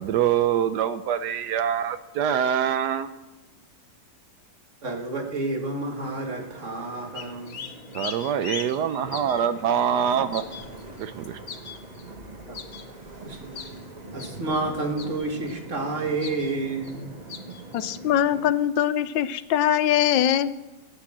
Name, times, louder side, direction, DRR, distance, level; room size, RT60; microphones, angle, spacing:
voice 1, 0.0-3.1 7.9-10.4 11.0-11.4, right 9 dB, 70° right, 12 dB, 1.1 m, -24 dB
voice 2, 4.8-7.7 12.5-12.6 13.2-13.7 14.1-17.1, right 2 dB, 40° right, 4 dB, 2.0 m, -30 dB
sound 1, 6.0-18.5, right 2 dB, 25° right, 1.4 m, -42 dB
sound 2, 7.1-9.4 10.0-12.1 12.5-12.8 13.5-13.7 14.2-14.6 15.0-15.5 16.2-16.5 16.8-17.0 17.3-17.8, left 6 dB, 45° left, 1.1 m, -38 dB
voice 3, 17.7-20.6, left 10 dB, 85° left, 14 dB, 1.4 m, -22 dB
13.0 x 11.5 x 7.3 m, 1.1 s
omnidirectional pair, 2.0 m